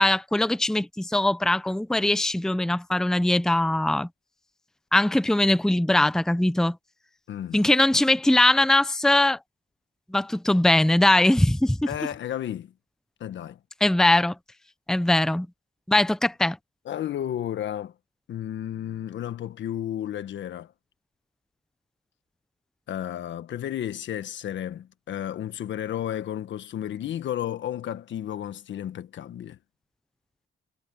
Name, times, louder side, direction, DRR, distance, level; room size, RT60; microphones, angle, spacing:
voice 1, 0.0-4.1 4.9-6.7 7.5-9.4 10.1-11.9 13.8-14.3 14.9-15.5 15.9-16.6, left 1 dB, 5° left, 0.7 m, -21 dB
voice 2, 7.3-7.7 11.9-12.7 13.2-13.6 16.8-17.9 18.3-20.7 22.9-29.6, left 11 dB, 70° left, 1.4 m, -32 dB
cardioid pair, 90°, 20 cm